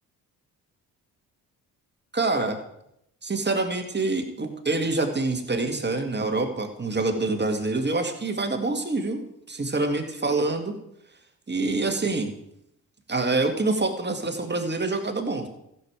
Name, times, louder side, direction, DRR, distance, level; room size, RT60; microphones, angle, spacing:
voice 1, 2.1-2.6 3.2-10.7 11.5-12.3 13.1-15.5, right 3 dB, 25° right, 4 dB, 2.0 m, -26 dB
14.5 x 7.5 x 5.0 m, 0.79 s
hypercardioid pair, 45°, 45 cm